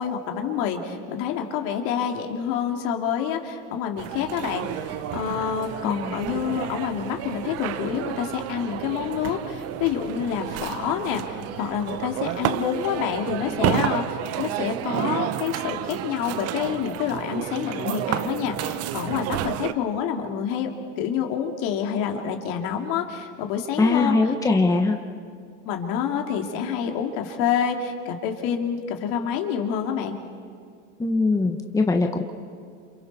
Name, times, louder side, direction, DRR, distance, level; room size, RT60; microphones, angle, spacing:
voice 1, 0.0-20.7 21.0-24.3 25.6-30.2, left 8 dB, 60° left, 3 dB, 2.5 m, -28 dB
sound 1, 4.0-19.7, right 11 dB, 45° right, 0.8 m, -30 dB
voice 2, 5.8-6.1 23.8-25.0 31.0-32.2, left 3 dB, 10° left, 4 dB, 1.0 m, -21 dB
28.0 x 27.0 x 4.2 m, 2.2 s
supercardioid pair, 130°, 36 cm